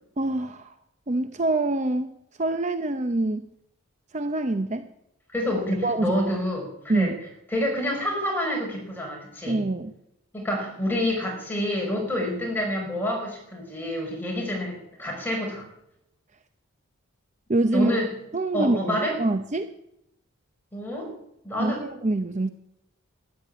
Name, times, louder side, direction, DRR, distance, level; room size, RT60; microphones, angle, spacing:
voice 1, 0.2-0.7 1.1-3.5 4.1-4.9 5.8-6.2 6.9-7.1 9.5-9.9 17.5-17.9 18.3-19.7 21.6-22.5, right 2 dB, 30° right, 9 dB, 0.6 m, -25 dB
voice 2, 5.3-7.1 7.5-9.6 10.3-15.6 17.7-18.1 18.5-19.2 20.7-21.1 21.4-21.8, equal, 10° left, -1 dB, 5.3 m, -28 dB
13.0 x 11.0 x 8.7 m, 0.81 s
head